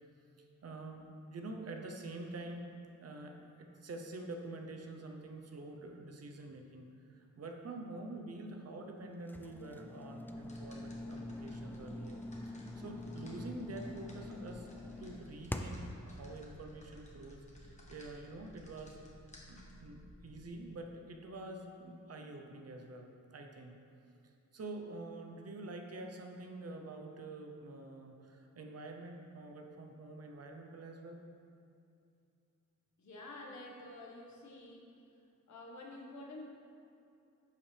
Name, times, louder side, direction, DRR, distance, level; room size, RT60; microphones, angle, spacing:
voice 1, 0.4-2.7 3.0-12.2 12.4-19.0 19.5-23.8 24.5-31.2, right 2 dB, 55° right, 3 dB, 0.8 m, -47 dB
sound 1, 9.3-16.0, left 1 dB, 5° left, 0.3 m, -44 dB
sound 2, 10.3-20.5, left 1 dB, 25° left, 1.2 m, -57 dB
voice 2, 33.0-34.9 35.5-36.4, left 2 dB, 65° left, -2 dB, 1.5 m, -49 dB
11.0 x 7.3 x 3.4 m, 2.6 s
wide cardioid pair, 180°, 30 cm